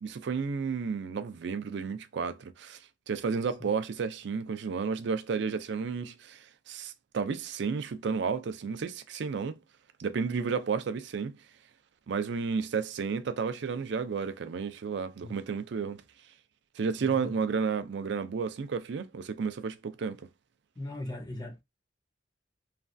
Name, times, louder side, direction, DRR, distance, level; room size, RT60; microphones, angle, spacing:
voice 1, 0.0-2.8 3.1-9.6 10.0-11.4 12.1-16.0 16.8-20.3, right 5 dB, 65° right, 0.4 m, -32 dB
voice 2, 17.0-17.3 20.8-21.6, left 1 dB, 20° left, 0.5 m, -39 dB
3.2 x 2.3 x 2.5 m
head